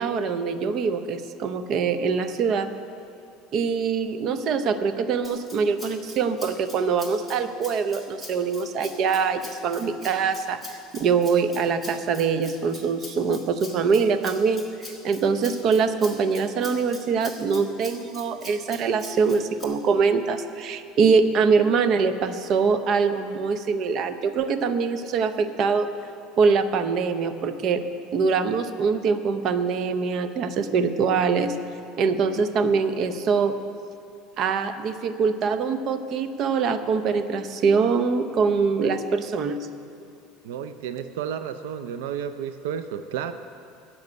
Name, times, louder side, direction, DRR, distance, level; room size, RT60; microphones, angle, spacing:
voice 1, 0.0-2.7 3.5-10.6 10.9-14.6 15.0-25.9 26.4-27.8 28.1-31.6 32.0-33.5 34.4-39.6, right 5 dB, 45° right, 10 dB, 0.7 m, -23 dB
Rattle (instrument), 5.2-19.6, left 2 dB, ahead, 1.8 m, -43 dB
voice 2, 40.4-43.3, right 8 dB, 90° right, 10 dB, 0.5 m, -32 dB
10.5 x 7.2 x 9.4 m, 2.5 s
supercardioid pair, 135°, 0 cm